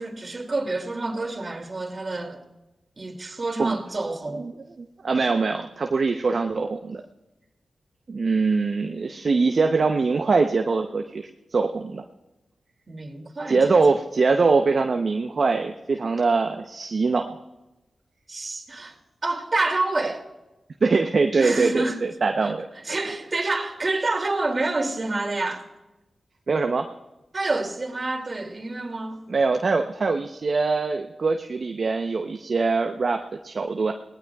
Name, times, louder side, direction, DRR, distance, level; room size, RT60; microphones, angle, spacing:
voice 1, 0.0-2.4 3.0-4.4 12.9-13.8 18.3-18.9 19.2-20.2 21.4-22.0 22.8-25.6 27.3-29.2, right 2 dB, 45° right, 2.6 m, -28 dB
voice 2, 4.8-7.0 8.1-12.0 13.5-17.4 20.8-22.7 26.5-26.8 29.3-33.9, right 4 dB, 60° right, 0.8 m, -23 dB
29.0 x 18.5 x 2.4 m
supercardioid pair, 40°, 0 cm